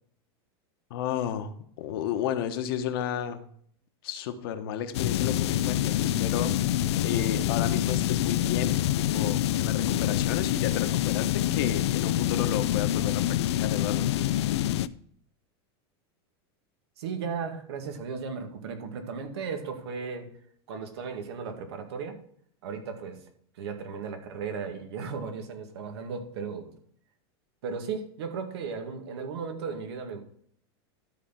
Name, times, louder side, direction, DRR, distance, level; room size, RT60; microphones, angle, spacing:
voice 1, 0.9-1.5 1.8-3.4 4.0-6.7 7.0-14.1, left 9 dB, 60° left, 8 dB, 1.2 m, -32 dB
sound 1, 4.9-14.9, left 12 dB, 85° left, 0.5 m, -26 dB
voice 2, 17.0-20.3 20.7-22.2 22.6-23.2 23.6-26.7 27.6-30.2, right 5 dB, 80° right, 5 dB, 2.0 m, -35 dB
12.5 x 4.4 x 5.8 m, 0.62 s
supercardioid pair, 170°, 14 cm